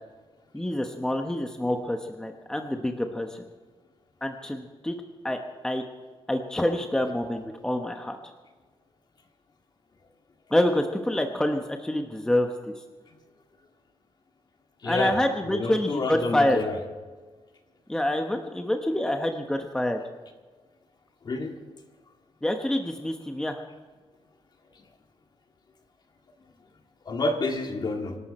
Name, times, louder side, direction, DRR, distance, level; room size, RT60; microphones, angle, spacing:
voice 1, 0.5-3.4 4.2-4.9 5.2-5.4 5.6-5.8 6.3-8.2 10.5-12.7 14.8-16.6 17.9-20.0 22.4-23.6, left 1 dB, 5° left, 4 dB, 1.1 m, -27 dB
voice 2, 14.8-15.2 15.5-16.8 21.2-21.5 27.1-28.2, left 2 dB, 45° left, 3 dB, 2.2 m, -28 dB
25.0 x 12.5 x 4.3 m, 1.4 s
wide cardioid pair, 145°, 10 cm